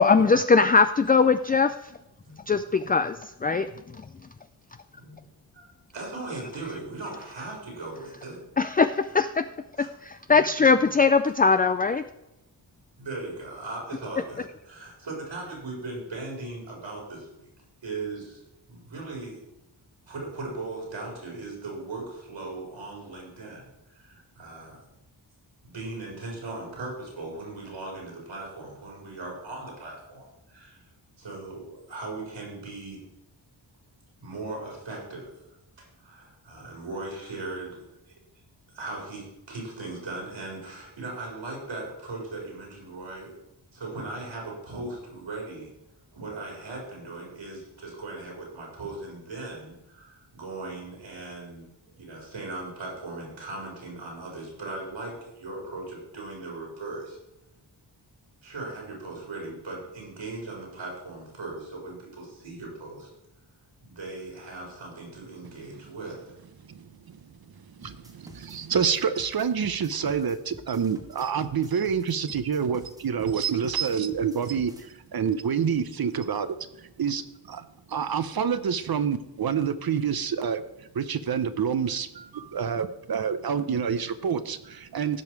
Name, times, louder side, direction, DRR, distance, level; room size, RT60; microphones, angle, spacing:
voice 1, 0.0-1.9 2.5-4.0 8.6-9.4 10.0-12.0, left 4 dB, 20° left, 10 dB, 0.3 m, -21 dB
voice 2, 5.9-8.4 9.8-9.9 10.3-10.9 13.0-17.5 17.8-19.4 20.1-24.8 25.6-30.8 31.2-33.0 34.2-35.3 35.8-37.8 38.1-38.2 38.7-43.3 43.7-45.7 46.1-51.7 52.0-57.2 58.4-63.1 63.8-66.2, right 2 dB, 80° right, -2 dB, 4.4 m, -38 dB
voice 3, 66.7-67.2 67.6-85.2, right 7 dB, 55° right, 12 dB, 0.8 m, -28 dB
sound 1, 67.8-74.9, left 1 dB, 10° right, 1.5 m, -48 dB
16.0 x 5.5 x 4.6 m, 0.89 s
wide cardioid pair, 80°, 45 cm